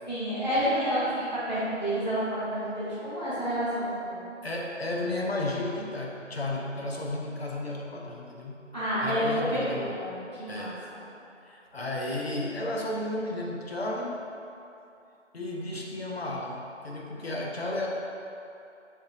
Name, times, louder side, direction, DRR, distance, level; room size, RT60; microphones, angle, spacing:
voice 1, 0.1-1.0 1.3-4.2 8.7-10.7, equal, 35° left, -11 dB, 0.9 m, -29 dB
voice 2, 4.4-8.6 9.0-10.0 10.5-10.9 11.4-14.2 15.3-17.9, left 2 dB, 55° left, -2 dB, 0.5 m, -33 dB
3.4 x 2.8 x 2.9 m, 2.7 s
figure-of-eight pair, 165°, 38 cm